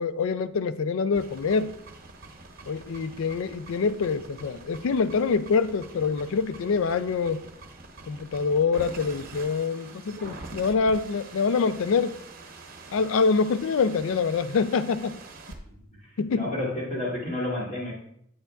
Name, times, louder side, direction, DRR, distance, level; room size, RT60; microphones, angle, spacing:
voice 1, 0.0-1.7 2.7-7.4 8.1-12.2 12.9-15.2 16.2-16.5, left 5 dB, 70° left, 0.4 m, -25 dB
sound 1, 1.1-15.6, right 3 dB, 45° right, 0.8 m, -45 dB
voice 2, 16.3-17.9, left 1 dB, 35° left, 2.4 m, -30 dB
8.7 x 6.8 x 2.3 m
head